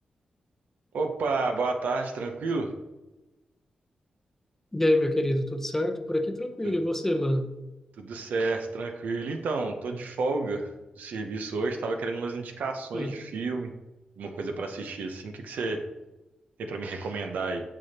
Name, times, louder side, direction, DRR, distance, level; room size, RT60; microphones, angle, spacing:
voice 1, 0.9-2.7 6.6-6.8 8.0-10.7 11.0-13.7 14.2-15.8 16.6-17.6, right 3 dB, 85° right, 5 dB, 0.6 m, -31 dB
voice 2, 4.7-7.5 12.9-13.1, left 1 dB, 10° left, 7 dB, 0.6 m, -26 dB
6.2 x 6.0 x 2.8 m, 1.1 s
cardioid pair, 90°, 3 cm